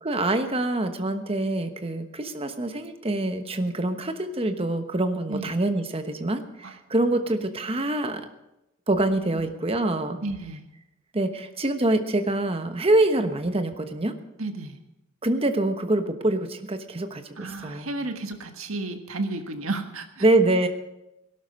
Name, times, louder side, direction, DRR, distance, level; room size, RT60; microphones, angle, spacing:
voice 1, 0.0-8.2 8.9-10.2 11.1-14.1 15.2-17.9 20.2-20.7, right 2 dB, 25° right, 7 dB, 1.1 m, -25 dB
voice 2, 10.2-10.7 14.4-14.8 17.4-20.2, right 2 dB, 75° right, 6 dB, 1.6 m, -32 dB
18.0 x 12.0 x 5.3 m, 0.90 s
head